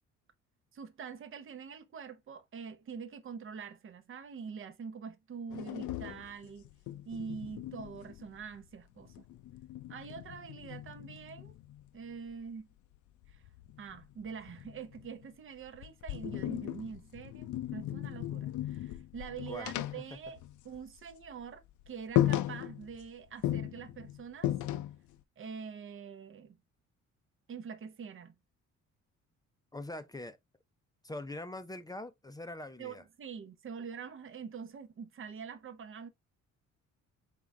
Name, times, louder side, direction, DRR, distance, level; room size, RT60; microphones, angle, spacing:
voice 1, 0.7-6.7 7.0-9.3 9.9-11.5 11.9-12.7 13.3-13.4 13.8-20.4 20.6-24.5 25.4-26.6 27.5-28.3 32.8-36.1, right 6 dB, 45° right, 0.7 m, -45 dB
sound 1, 5.5-8.6 9.0-11.9 13.2-15.3 15.7-21.0 21.2-21.4 21.8-21.9 22.2-23.1 23.4-25.1, left 13 dB, 75° left, 0.5 m, -36 dB
voice 2, 29.7-30.4 31.0-33.0, left 1 dB, 15° left, 0.5 m, -42 dB
3.8 x 3.6 x 3.3 m
cardioid pair, 90°, 30 cm